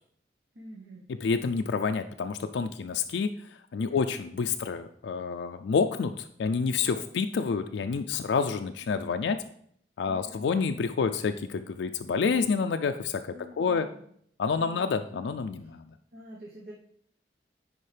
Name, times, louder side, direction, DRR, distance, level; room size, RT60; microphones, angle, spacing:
voice 1, 0.5-1.1 3.9-4.1 6.9-7.0 10.0-10.4 13.3-14.0 14.5-14.8 15.6-15.7 16.1-16.7, right 1 dB, 65° right, -2 dB, 1.0 m, -47 dB
voice 2, 1.2-3.3 3.7-9.4 10.0-13.2 13.6-13.9 14.4-15.8, left 5 dB, 90° left, 7 dB, 0.4 m, -28 dB
9.8 x 4.6 x 3.3 m, 0.67 s
head